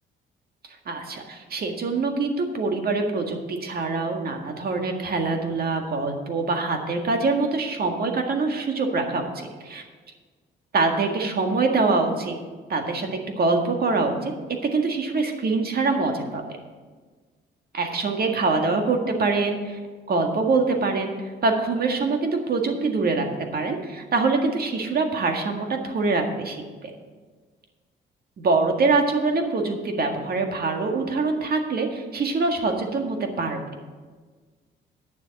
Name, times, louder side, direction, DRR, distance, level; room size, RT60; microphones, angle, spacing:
voice 1, 0.9-9.8 10.7-12.3 12.7-14.3 14.7-16.4 17.7-19.8 20.1-21.1 21.4-23.3 23.5-26.9 28.4-33.6, right 3 dB, 50° right, 4 dB, 1.8 m, -24 dB
9.5 x 7.0 x 7.2 m, 1.4 s
cardioid pair, 90°, 20 cm